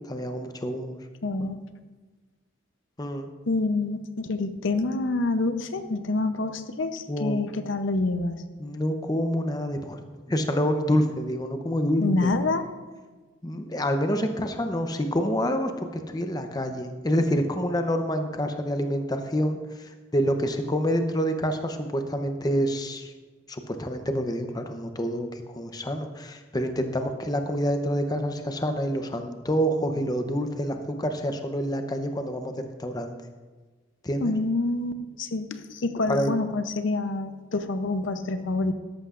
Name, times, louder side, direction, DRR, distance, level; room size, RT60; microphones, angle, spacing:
voice 1, 0.1-1.0 3.0-3.3 7.1-7.4 8.6-10.0 10.3-12.3 13.4-15.7 16.1-23.1 23.5-33.1 34.0-34.3 36.1-36.3, equal, 20° left, 6 dB, 0.7 m, -27 dB
voice 2, 1.2-1.6 3.5-8.4 12.0-12.6 34.2-38.7, left 2 dB, 80° left, 9 dB, 0.7 m, -27 dB
13.5 x 11.5 x 2.5 m, 1.3 s
head